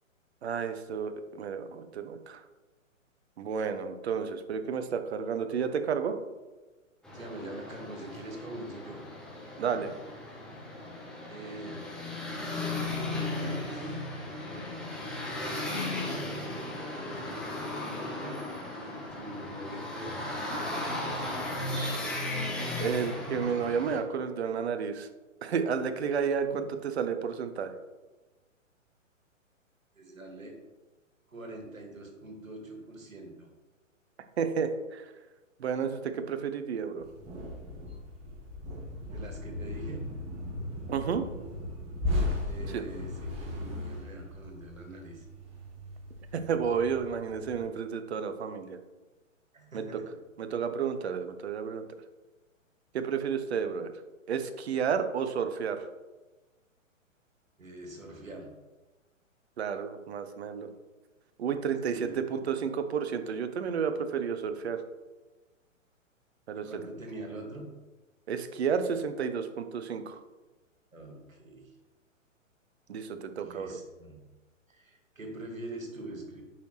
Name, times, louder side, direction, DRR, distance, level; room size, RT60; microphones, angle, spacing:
voice 1, 0.4-2.4 3.4-6.1 9.6-9.9 22.8-25.1 25.4-27.7 34.4-35.1 35.6-37.0 40.9-41.2 42.7-42.8 46.3-48.8 49.7-49.8 50.4-51.9 52.9-53.9 54.3-55.9 59.6-60.7 61.4-64.8 66.5-66.8 68.3-70.2 72.9-73.8, right 6 dB, 55° right, 9 dB, 0.9 m, -31 dB
sound 1, 7.0-24.0, left 2 dB, ahead, 1.1 m, -36 dB
voice 2, 7.1-9.1 11.3-11.9 12.9-14.0 15.2-21.3 26.5-26.6 29.9-30.6 31.3-33.5 39.1-40.2 42.4-45.3 49.5-50.2 57.6-58.6 61.8-62.2 66.5-67.8 70.9-71.8 73.3-74.3 74.7-76.4, right 2 dB, 80° right, 2 dB, 2.0 m, -44 dB
sound 2, 37.0-47.6, left 2 dB, 15° right, 1.6 m, -37 dB
8.3 x 5.8 x 3.2 m, 1.2 s
figure-of-eight pair, 120°, 40 cm